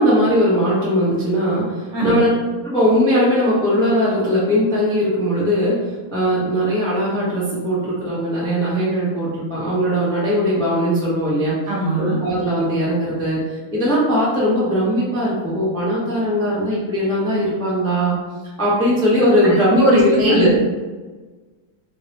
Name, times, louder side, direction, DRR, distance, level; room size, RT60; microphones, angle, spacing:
voice 1, 0.0-2.3 2.6-5.8 6.1-11.5 12.0-18.2 18.6-20.5, equal, 5° left, -8 dB, 0.4 m, -19 dB
voice 2, 11.7-12.2 19.7-20.6, equal, 60° right, -4 dB, 1.5 m, -18 dB
3.7 x 3.2 x 2.9 m, 1.3 s
omnidirectional pair, 2.4 m